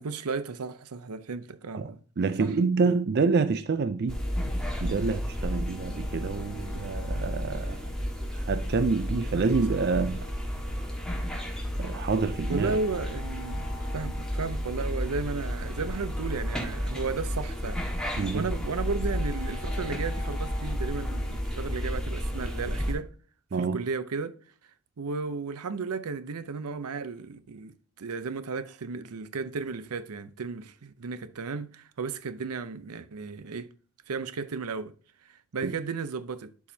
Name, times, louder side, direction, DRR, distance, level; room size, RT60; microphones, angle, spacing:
voice 1, 0.0-2.0 2.4-2.5 2.8-3.0 6.2-6.3 9.3-9.5 12.5-23.1 23.6-24.4 25.0-33.7 34.1-34.9 35.3-36.5, right 4 dB, 85° right, 0.6 m, -34 dB
voice 2, 1.7-4.2 4.8-7.9 8.3-10.3 11.8-12.8 18.2-18.5 23.5-23.8 35.6-35.7, right 4 dB, 45° right, 0.4 m, -27 dB
sound 1, 4.1-22.9, equal, 5° left, 1.5 m, -32 dB
11.5 x 4.8 x 2.7 m
head